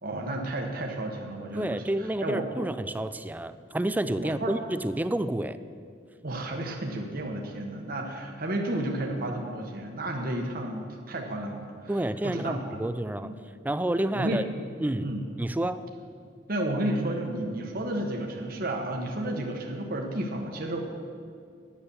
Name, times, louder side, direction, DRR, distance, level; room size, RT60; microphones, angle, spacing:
voice 1, 0.0-2.6 4.2-4.5 6.2-11.9 12.2-12.8 13.2-13.3 14.1-14.4 15.0-15.3 16.5-20.9, right 1 dB, 50° right, 1 dB, 1.2 m, -32 dB
voice 2, 1.5-5.6 11.9-13.3 13.6-14.4 14.8-15.1 15.4-15.9, right 1 dB, 10° right, 13 dB, 0.3 m, -29 dB
9.7 x 9.6 x 6.9 m, 2.3 s
head